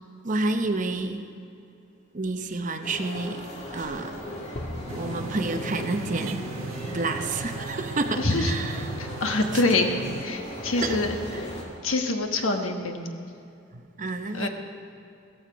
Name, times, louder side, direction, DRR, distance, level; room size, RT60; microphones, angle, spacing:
voice 1, 0.2-1.3 2.1-4.3 4.9-6.5 6.8-8.9 9.5-9.6 10.8-11.0 13.7-14.5, right 2 dB, 40° right, 7 dB, 0.8 m, -30 dB
sound 1, 2.8-11.6, equal, 30° left, 2.2 m, -37 dB
sound 2, 4.9-10.3, right 5 dB, 75° right, 0.5 m, -38 dB
voice 2, 8.2-8.5 9.0-9.9 10.2-11.1 11.4-11.5 11.8-13.0 14.3-14.5, left 2 dB, 80° left, 4 dB, 1.4 m, -25 dB
15.5 x 14.5 x 5.1 m, 2.6 s
head